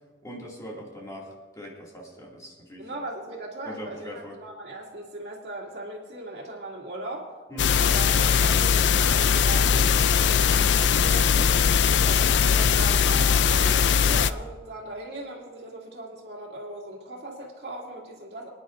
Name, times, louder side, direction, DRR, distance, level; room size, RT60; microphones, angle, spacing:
voice 1, 0.2-2.9 3.6-4.4 7.5-7.8 11.1-11.7, equal, 20° left, -3 dB, 2.4 m, -40 dB
voice 2, 2.8-11.4 11.8-18.5, right 1 dB, 65° right, -2 dB, 2.5 m, -38 dB
sound 1, 7.6-14.3, left 7 dB, 85° left, 0.4 m, -20 dB
25.0 x 10.0 x 2.6 m, 1.4 s
head